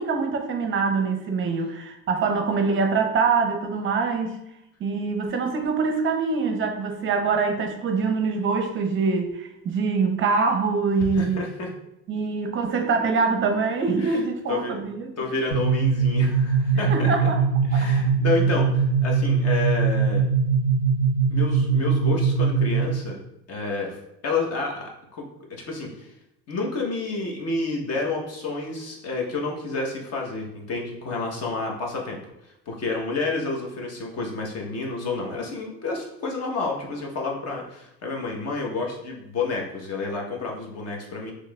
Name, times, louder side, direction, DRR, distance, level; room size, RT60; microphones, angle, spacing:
voice 1, 0.0-4.4 4.8-11.4 12.1-15.1 16.9-17.4 17.7-17.9, right 4 dB, 30° right, 4 dB, 0.6 m, -24 dB
voice 2, 11.0-11.7 14.0-14.2 14.5-14.7 15.2-17.3 17.6-20.2 21.3-23.2 23.5-26.1 26.5-32.2 32.7-41.3, left 3 dB, 40° left, 0 dB, 1.0 m, -29 dB
sound 1, 15.5-23.1, right 5 dB, 80° left, 1.2 m, -21 dB
4.5 x 3.0 x 2.3 m, 0.85 s
supercardioid pair, 115°, 39 cm